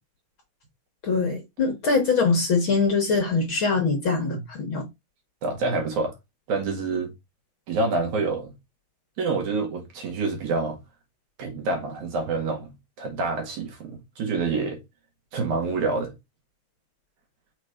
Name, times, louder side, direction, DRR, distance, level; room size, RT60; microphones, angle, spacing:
voice 1, 1.0-4.9, left 4 dB, 50° left, 1.9 m, -23 dB
voice 2, 5.4-6.1 6.5-7.1 7.7-8.5 9.2-10.8 11.4-14.8 15.3-16.1, right 3 dB, 70° right, 3.1 m, -27 dB
6.3 x 3.0 x 5.0 m
omnidirectional pair, 3.6 m